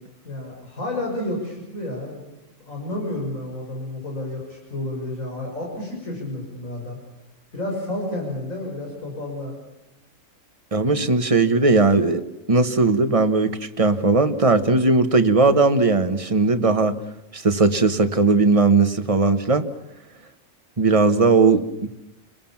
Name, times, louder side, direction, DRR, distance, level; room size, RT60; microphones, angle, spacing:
voice 1, 0.2-2.3 2.6-7.0 7.5-9.5, left 1 dB, 85° left, -1 dB, 6.9 m, -30 dB
voice 2, 10.7-12.2 12.5-17.0 17.3-19.7 20.8-21.6, right 3 dB, 25° right, 9 dB, 1.4 m, -18 dB
29.0 x 21.0 x 7.4 m, 0.90 s
omnidirectional pair, 1.4 m